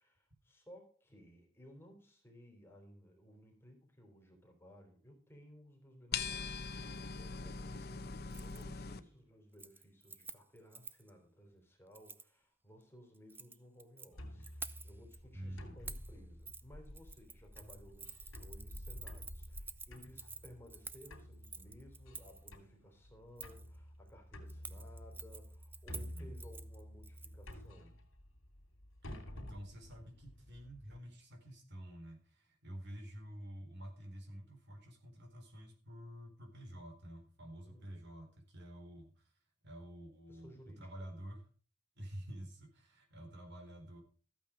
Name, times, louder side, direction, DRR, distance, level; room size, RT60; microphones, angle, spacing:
voice 1, 0.0-28.0 37.6-38.0 40.3-40.9, equal, 10° left, 2 dB, 3.4 m, -59 dB
sound 1, 6.1-9.0, left 5 dB, 50° left, 1.0 m, -41 dB
Keys jangling, 8.3-8.6 9.0-9.3 9.5-11.1 11.9-12.3 13.1-14.1 14.4-15.2 15.9-16.1 16.5-16.6 16.9-22.5 23.4-23.7 24.5-27.5 27.8-27.9, right 4 dB, 10° right, 0.6 m, -50 dB
sound 2, 14.1-31.0, equal, 70° left, 3.0 m, -51 dB
voice 2, 15.3-15.8 25.9-26.3 29.0-39.3 39.6-41.5 42.0-44.0, equal, 55° right, 4 dB, 3.8 m, -49 dB
14.0 x 8.6 x 5.0 m, 0.40 s
head